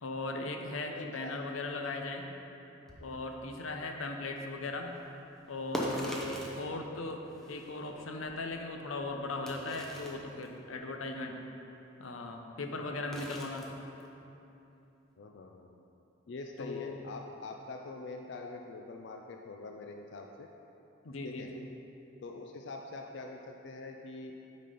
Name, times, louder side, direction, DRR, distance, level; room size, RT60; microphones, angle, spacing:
voice 1, 0.0-2.3 3.0-4.9 5.5-7.2 7.5-11.4 12.0-13.7 16.6-17.0 21.0-21.6, left 2 dB, 90° left, 3 dB, 0.7 m, -38 dB
voice 2, 0.9-1.4 6.4-6.6 15.2-15.8 16.3-20.5 21.2-21.5 22.2-24.3, left 3 dB, 60° left, 2 dB, 0.4 m, -44 dB
sound 1, 2.9-3.1 5.3-6.7 7.1-8.7 9.0-9.1 9.5-10.5 13.1-13.7 14.0-14.1, equal, ahead, 0.7 m, -40 dB
8.9 x 4.2 x 5.0 m, 2.9 s
head